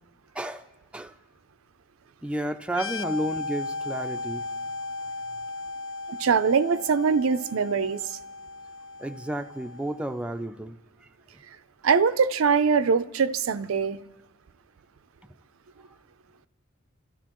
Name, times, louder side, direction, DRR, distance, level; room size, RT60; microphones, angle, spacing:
voice 1, 0.4-0.7 0.9-1.1 2.2-4.4 9.0-10.8, right 1 dB, 5° right, 0.4 m, -31 dB
sound 1, 2.7-10.2, left 3 dB, 75° left, 0.5 m, -36 dB
voice 2, 6.1-8.2 11.8-14.0, right 5 dB, 80° right, 0.5 m, -23 dB
29.5 x 14.0 x 3.0 m
head